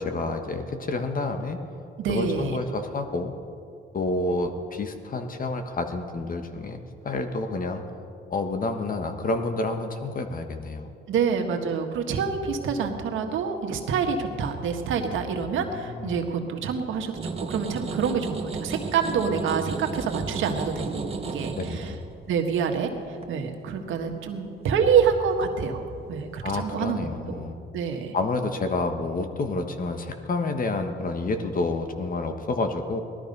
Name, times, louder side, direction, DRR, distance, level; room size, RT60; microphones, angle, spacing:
voice 1, 0.0-1.6 2.1-3.3 3.9-7.8 8.3-10.9 15.7-16.2 21.6-22.0 26.4-27.7 28.1-33.0, left 3 dB, 45° left, 6 dB, 1.5 m, -29 dB
voice 2, 2.0-2.6 11.1-21.9 22.3-22.9 23.3-25.8 26.1-27.0 27.3-27.4 27.7-28.2, right 6 dB, 80° right, 3 dB, 1.7 m, -27 dB
sound 1, 17.1-25.3 25.8-26.3, right 4 dB, 30° right, 1.4 m, -34 dB
18.5 x 12.5 x 5.5 m, 2.5 s
cardioid pair, 90°, 20 cm